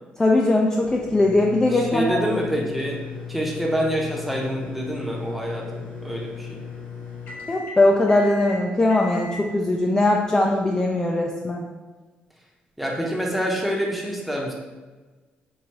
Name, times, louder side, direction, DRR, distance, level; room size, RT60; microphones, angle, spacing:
voice 1, 0.2-2.2 7.5-11.6, left 2 dB, 20° left, -1 dB, 0.4 m, -20 dB
sound 1, 0.8-11.1, left 5 dB, 70° left, 1.0 m, -37 dB
voice 2, 1.7-3.0 3.3-6.6 12.8-14.5, equal, ahead, -2 dB, 0.7 m, -26 dB
4.5 x 2.6 x 2.9 m, 1.3 s
cardioid pair, 115°, 4 cm